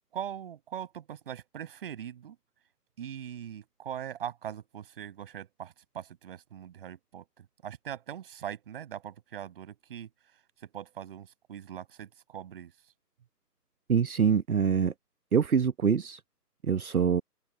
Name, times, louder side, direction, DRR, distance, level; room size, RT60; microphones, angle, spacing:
voice 1, 0.1-2.4 3.0-10.1 10.6-12.7, right 9 dB, 35° right, 5.8 m, -41 dB
voice 2, 13.9-14.9 15.3-16.2 16.6-17.2, right 6 dB, 60° right, 1.1 m, -25 dB
open air
figure-of-eight pair, 150°, 49 cm